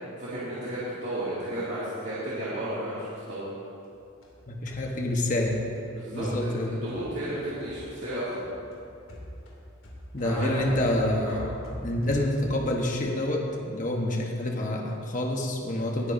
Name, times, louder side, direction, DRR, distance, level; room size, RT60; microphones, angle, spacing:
voice 1, 0.2-3.4 5.9-8.4 10.2-10.7 11.2-11.4 16.0-16.1, right 1 dB, 55° right, -11 dB, 2.4 m, -33 dB
sound 1, 3.8-8.1 8.4-12.7, equal, 85° left, 2.7 m, -44 dB
voice 2, 4.5-5.6 6.1-6.8 10.1-11.5 11.8-16.1, left 1 dB, 40° left, 0 dB, 1.1 m, -27 dB
19.0 x 10.0 x 2.7 m, 2.6 s
head